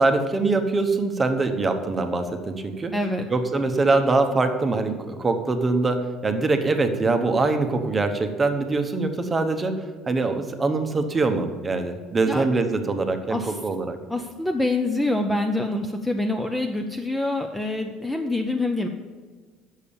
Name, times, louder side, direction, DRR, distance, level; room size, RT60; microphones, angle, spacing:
voice 1, 0.0-2.9 3.3-14.0, right 3 dB, 20° right, 7 dB, 0.8 m, -23 dB
voice 2, 2.9-3.3 12.3-12.4 13.3-13.6 14.1-18.9, left 2 dB, 5° left, 4 dB, 0.5 m, -26 dB
6.9 x 6.5 x 7.0 m, 1.4 s
cardioid pair, 145°, 0 cm